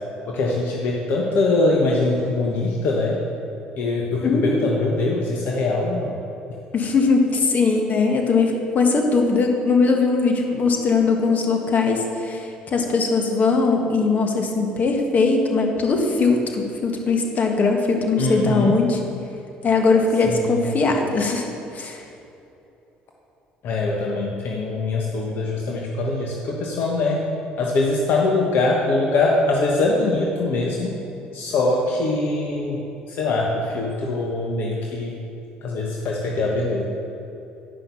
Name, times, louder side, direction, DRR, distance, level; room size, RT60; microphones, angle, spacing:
voice 1, 0.3-3.2 3.8-6.2 18.2-18.8 20.2-20.6 23.6-27.3 27.6-31.0 31.3-35.2 35.6-36.8, left 2 dB, 65° left, -1 dB, 1.1 m, -23 dB
voice 2, 4.2-4.7 6.7-19.0 19.6-21.4 21.7-22.0, left 4 dB, 45° left, 2 dB, 1.5 m, -20 dB
10.0 x 5.8 x 5.6 m, 2.9 s
supercardioid pair, 70°, 4 cm